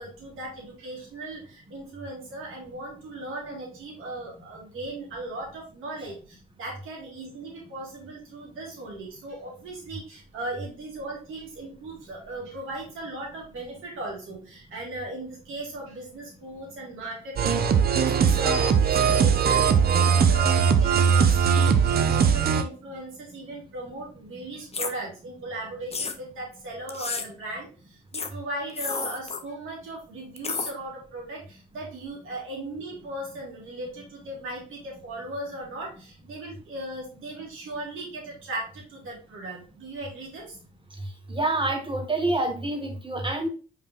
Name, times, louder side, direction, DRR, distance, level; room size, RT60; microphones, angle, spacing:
voice 1, 0.0-40.6, right 2 dB, 70° right, -2 dB, 2.1 m, -37 dB
sound 1, 17.4-22.6, right 7 dB, 50° right, 0.6 m, -20 dB
sound 2, 24.7-24.9 25.9-26.2 26.9-27.3 28.1-28.3 28.7-29.4 30.4-30.7, left 4 dB, 30° left, 0.7 m, -31 dB
voice 2, 41.3-43.5, right 2 dB, 25° right, 4 dB, 1.3 m, -27 dB
5.1 x 3.9 x 2.5 m, 0.37 s
hypercardioid pair, 45°, 21 cm